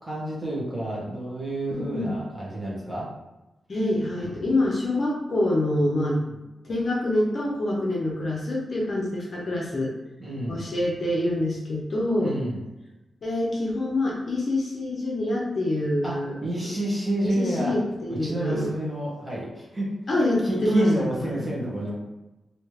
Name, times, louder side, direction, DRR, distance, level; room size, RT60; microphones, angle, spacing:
voice 1, 0.0-3.1 6.1-6.4 10.2-10.7 12.2-12.6 16.0-17.7 18.1-19.9 20.4-21.9, right 1 dB, 15° right, -7 dB, 1.3 m, -29 dB
voice 2, 1.7-2.1 3.7-6.2 6.6-9.9 10.5-12.4 13.2-16.3 17.2-18.7 20.1-20.9, left 1 dB, 45° left, -3 dB, 0.8 m, -26 dB
3.2 x 2.8 x 3.2 m, 1.0 s
wide cardioid pair, 140°, 0 cm